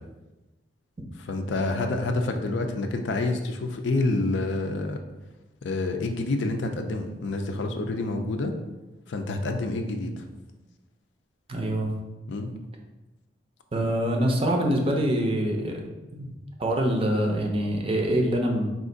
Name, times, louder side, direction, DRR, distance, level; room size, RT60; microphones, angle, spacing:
voice 1, 1.2-5.0 5.6-8.5 9.1-10.2 12.3-12.5, left 2 dB, 75° left, 5 dB, 0.4 m, -28 dB
voice 2, 11.5-11.9 13.7-15.8 16.1-16.3 16.6-18.7, right 1 dB, 30° right, 2 dB, 0.5 m, -25 dB
4.3 x 2.4 x 3.8 m, 1.1 s
head